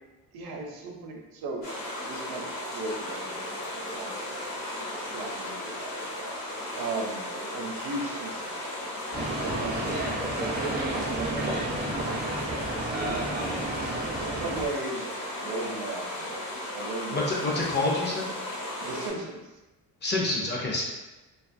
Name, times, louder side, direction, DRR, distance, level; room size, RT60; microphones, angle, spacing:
voice 1, 0.3-1.6 2.0-3.4 3.7-4.5 5.1-6.3 6.7-7.3 7.5-8.8 9.2-13.7 14.3-15.1 15.4-16.3 16.7-17.6 18.8-19.5, right 2 dB, 75° right, 1 dB, 0.6 m, -37 dB
sound 1, 1.6-19.1, left 1 dB, 70° left, 1.0 m, -36 dB
sound 2, 9.1-14.7, right 2 dB, 25° right, 0.4 m, -31 dB
voice 2, 17.1-18.2 20.0-20.8, left 2 dB, 30° left, -3 dB, 0.5 m, -27 dB
2.6 x 2.4 x 2.5 m, 1.1 s
cardioid pair, 140°, 38 cm